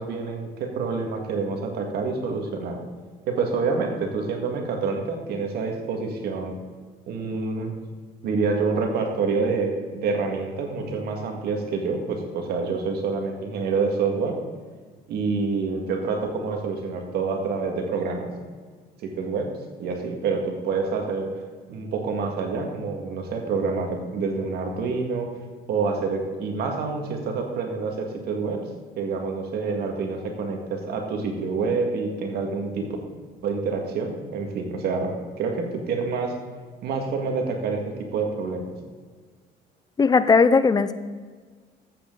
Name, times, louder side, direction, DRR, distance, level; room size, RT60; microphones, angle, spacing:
voice 1, 0.0-2.8 3.3-6.5 7.1-7.7 8.2-14.3 15.1-18.3 19.0-19.5 19.8-21.3 21.7-25.3 25.7-28.6 29.0-32.9 33.4-36.3 36.8-38.7, right 4 dB, 70° right, 2 dB, 2.0 m, -27 dB
voice 2, 40.0-40.9, left 4 dB, 25° left, 13 dB, 0.6 m, -17 dB
14.5 x 7.9 x 3.9 m, 1.5 s
cardioid pair, 110°, 17 cm